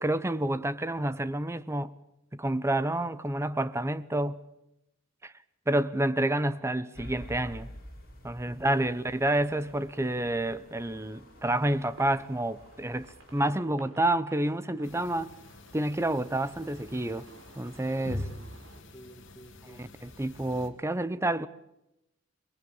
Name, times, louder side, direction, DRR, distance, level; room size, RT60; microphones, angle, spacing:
voice 1, 0.0-1.9 2.3-4.4 5.2-5.3 5.7-7.7 8.2-15.3 15.7-17.3 17.5-18.2 19.8-21.5, right 1 dB, 15° right, 0.8 m, -29 dB
sound 1, 6.9-13.5, equal, 50° left, 7.1 m, -49 dB
voice 2, 8.5-8.8 18.0-19.8, equal, 10° left, 2.2 m, -52 dB
sound 2, 8.6-18.8, right 2 dB, 65° right, 4.1 m, -57 dB
sound 3, 14.8-20.7, left 1 dB, 65° left, 3.0 m, -44 dB
24.0 x 21.5 x 7.2 m
head